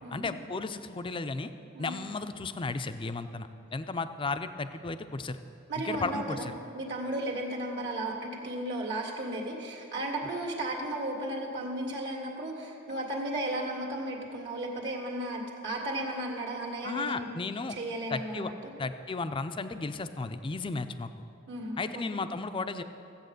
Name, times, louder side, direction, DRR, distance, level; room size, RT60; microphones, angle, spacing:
voice 1, 0.1-1.5 1.8-5.4 5.8-6.5 16.8-17.8 18.1-18.5 18.8-21.1 21.8-22.8, left 3 dB, 25° left, 10 dB, 0.5 m, -34 dB
voice 2, 5.7-6.5 6.7-17.3 17.7-18.7 21.5-22.2, right 1 dB, 60° right, -1 dB, 2.0 m, -35 dB
15.0 x 8.3 x 6.6 m, 2.8 s
head